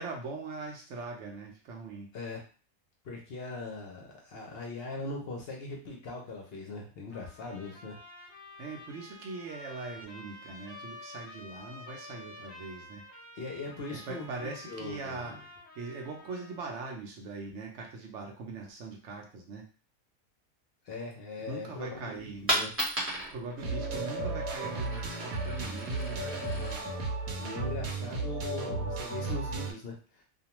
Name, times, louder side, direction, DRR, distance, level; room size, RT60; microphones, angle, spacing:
voice 1, 0.0-2.1 8.6-13.1 13.9-15.4 15.8-19.7 21.5-22.7 23.3-26.9, right 3 dB, 65° right, 1 dB, 0.9 m, -41 dB
voice 2, 3.0-8.0 13.3-15.2 20.8-22.7 27.4-30.2, left 3 dB, 60° left, 0 dB, 0.7 m, -40 dB
Trumpet, 7.1-16.8, left 2 dB, 25° left, 1.0 m, -50 dB
Coin (dropping), 22.1-28.1, right 1 dB, 10° right, 0.8 m, -37 dB
sound 1, 23.6-29.7, right 3 dB, 85° right, 1.0 m, -34 dB
2.4 x 2.2 x 2.9 m, 0.37 s
omnidirectional pair, 1.4 m